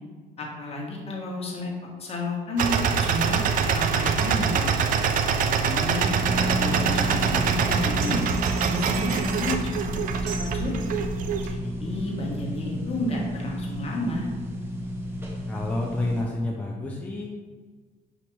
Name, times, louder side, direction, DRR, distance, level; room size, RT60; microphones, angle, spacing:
voice 1, 0.4-1.7 2.0-4.7 5.4-8.2 8.6-10.0 10.4-10.9 11.4-14.3, left 1 dB, 35° left, -2 dB, 1.1 m, -31 dB
sound 1, 2.6-11.5, right 6 dB, 55° right, 0.4 m, -25 dB
sound 2, 6.1-16.2, equal, 15° right, 0.8 m, -31 dB
sound 3, 8.0-9.7 10.3-10.6, right 5 dB, 80° right, 0.8 m, -41 dB
voice 2, 15.5-17.3, left 2 dB, 10° left, -2 dB, 0.4 m, -29 dB
5.7 x 2.8 x 3.1 m, 1.5 s
cardioid pair, 110°, 17 cm